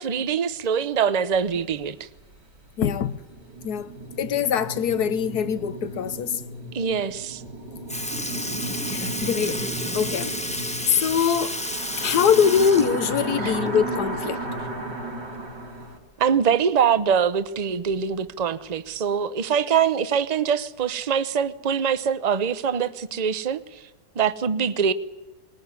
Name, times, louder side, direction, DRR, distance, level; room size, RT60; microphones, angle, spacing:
voice 1, 0.0-2.1 6.7-7.4 13.4-13.5 16.2-23.6 24.1-24.9, right 7 dB, 35° right, 0.7 m, -23 dB
sound 1, 1.3-1.4 1.6-1.7 2.3-2.4 2.9-16.0, right 1 dB, 75° right, 4.7 m, -34 dB
voice 2, 2.8-3.2 3.6-3.9 4.2-6.4 8.9-9.7 9.9-11.6 11.9-14.4, left 7 dB, 65° left, 1.5 m, -23 dB
Sink (filling or washing) / Liquid, 7.5-7.6 7.9-14.0 14.3-14.4 16.0-16.1 17.0-17.1 17.9-18.2 19.0-19.1, equal, 5° left, 1.1 m, -31 dB
20.5 x 20.0 x 9.6 m
omnidirectional pair, 1.8 m